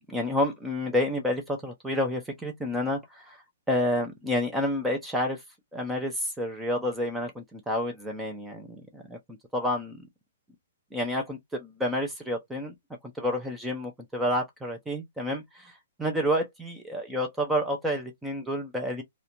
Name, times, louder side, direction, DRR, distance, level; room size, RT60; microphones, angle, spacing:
voice 1, 0.1-3.4 3.7-5.4 5.7-8.7 8.9-10.0 10.9-12.7 13.2-15.7 16.0-19.0, left 1 dB, 5° right, 0.3 m, -29 dB
2.4 x 2.1 x 2.8 m
hypercardioid pair, 180°, 0 cm